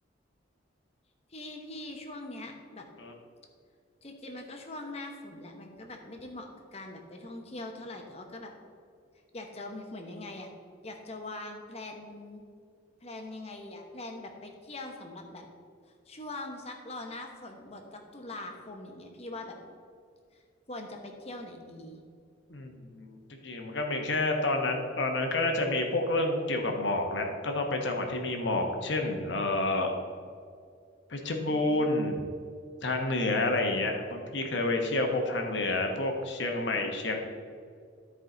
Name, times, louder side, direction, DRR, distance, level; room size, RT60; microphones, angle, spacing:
voice 1, 1.3-2.9 4.0-8.5 9.3-10.5 10.8-12.4 13.0-15.5 16.1-19.6 20.7-22.0 31.5-31.9, left 2 dB, 35° left, 3 dB, 1.0 m, -42 dB
voice 2, 22.5-29.9 31.1-32.2 32.8-37.2, left 2 dB, 65° left, 3 dB, 1.1 m, -29 dB
13.0 x 4.9 x 3.9 m, 2.2 s
head